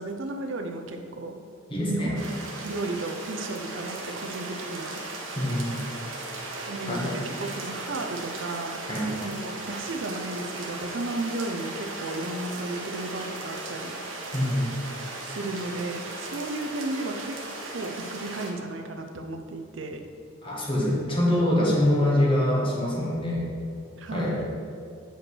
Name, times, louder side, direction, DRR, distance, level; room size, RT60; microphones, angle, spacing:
voice 1, 0.0-1.4 1.8-5.0 6.7-8.8 9.2-14.0 15.2-17.4 17.7-20.1 24.0-24.5, right 2 dB, 70° right, 5 dB, 0.7 m, -34 dB
voice 2, 1.7-2.1 5.4-5.8 6.9-7.2 8.9-9.2 14.3-14.7 20.4-23.4 24.1-24.4, left 1 dB, 25° left, -4 dB, 1.6 m, -24 dB
sound 1, 2.1-18.5, right 2 dB, 90° right, 1.3 m, -37 dB
7.8 x 5.2 x 4.6 m, 2.4 s
head